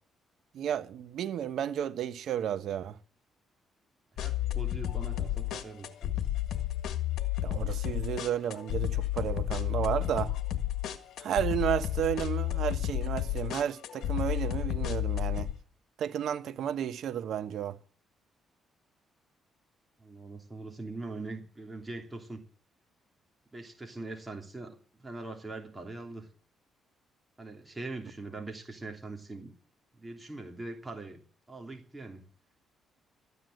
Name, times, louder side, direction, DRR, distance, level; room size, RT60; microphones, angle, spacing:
voice 1, 0.5-3.0 7.4-10.3 11.2-15.5 16.0-17.8, right 10 dB, 70° right, 1.1 m, -32 dB
sound 1, 4.2-15.5, left 13 dB, 75° left, 1.6 m, -32 dB
voice 2, 4.2-6.1 20.0-22.4 23.5-26.3 27.4-29.5 29.9-32.2, right 2 dB, 15° right, 3.0 m, -42 dB
14.0 x 9.5 x 7.7 m
cardioid pair, 90°, 0 cm